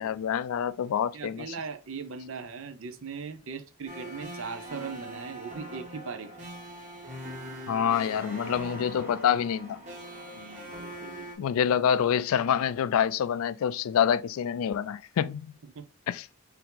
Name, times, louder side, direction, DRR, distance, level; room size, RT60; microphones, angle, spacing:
voice 1, 0.0-1.5 7.7-9.8 11.4-15.5 16.1-16.3, left 8 dB, 80° left, 0.3 m, -26 dB
voice 2, 1.1-6.4 10.3-11.5 15.7-15.8, right 5 dB, 65° right, 0.6 m, -39 dB
sound 1, 3.9-11.4, right 1 dB, 35° right, 1.3 m, -42 dB
4.3 x 2.7 x 3.9 m
head